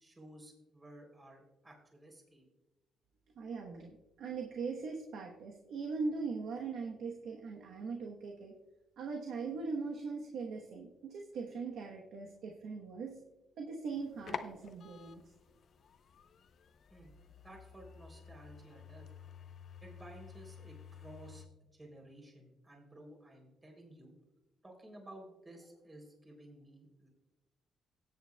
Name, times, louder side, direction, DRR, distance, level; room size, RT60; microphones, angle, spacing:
voice 1, 0.0-2.4 16.9-17.1 17.4-19.1 19.8-21.4 21.7-24.1 24.6-27.1, right 1 dB, 20° right, 1 dB, 3.3 m, -54 dB
voice 2, 3.4-8.5 9.0-13.2 13.6-15.2, right 4 dB, 75° right, 1 dB, 1.1 m, -40 dB
sound 1, 13.9-21.5, left 7 dB, 60° left, 0.7 m, -50 dB
17.0 x 8.8 x 2.3 m, 0.99 s
cardioid pair, 90°, 0 cm